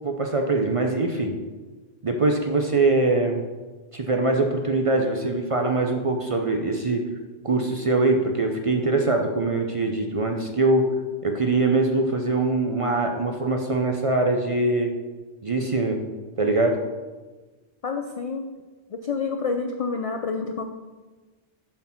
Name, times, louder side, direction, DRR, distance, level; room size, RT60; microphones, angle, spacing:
voice 1, 0.0-1.3 2.0-3.4 3.9-7.0 7.4-10.9 11.2-14.9 15.4-16.0 16.4-16.8, right 2 dB, 40° right, 3 dB, 0.5 m, -23 dB
voice 2, 17.8-18.5 18.9-20.6, left 4 dB, 65° left, 5 dB, 0.3 m, -28 dB
7.2 x 4.5 x 5.7 m, 1.3 s
omnidirectional pair, 1.2 m